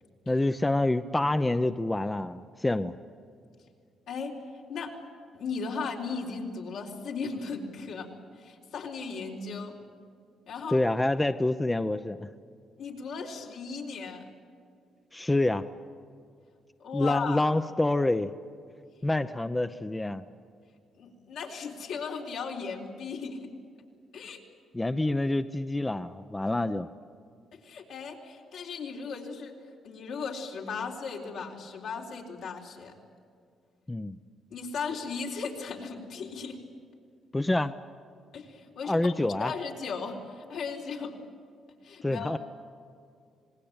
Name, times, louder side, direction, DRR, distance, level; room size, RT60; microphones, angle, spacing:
voice 1, 0.3-2.9 10.7-12.3 15.1-15.6 16.9-18.3 19.0-20.2 24.7-26.9 33.9-34.2 37.3-37.8 38.8-39.5 42.0-42.4, left 2 dB, 15° left, 9 dB, 0.7 m, -27 dB
voice 2, 4.1-4.4 4.7-4.9 5.3-8.1 8.4-9.7 10.5-10.8 12.8-14.2 16.8-17.5 21.0-23.5 24.1-24.4 27.5-29.5 29.8-32.9 34.5-36.6 38.3-41.2 41.8-42.4, left 5 dB, 75° left, -1 dB, 4.0 m, -36 dB
26.5 x 20.0 x 8.9 m, 2.3 s
cardioid pair, 90°, 0 cm